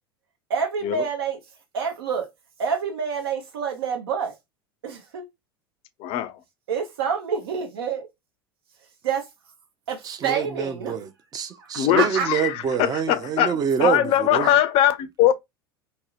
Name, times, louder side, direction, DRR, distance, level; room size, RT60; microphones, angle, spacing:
voice 1, 0.5-1.4 1.7-2.3 2.6-4.3 4.8-5.3 6.7-8.1 9.0-9.3 9.9-11.0 11.5-11.7 11.9-12.3 14.4-14.5, right 6 dB, 75° right, 0.8 m, -27 dB
voice 2, 6.0-6.4 11.8-15.3, left 12 dB, 45° left, 0.4 m, -21 dB
voice 3, 10.0-14.5, right 7 dB, 30° right, 0.5 m, -26 dB
2.7 x 2.1 x 2.4 m
hypercardioid pair, 85°, 13 cm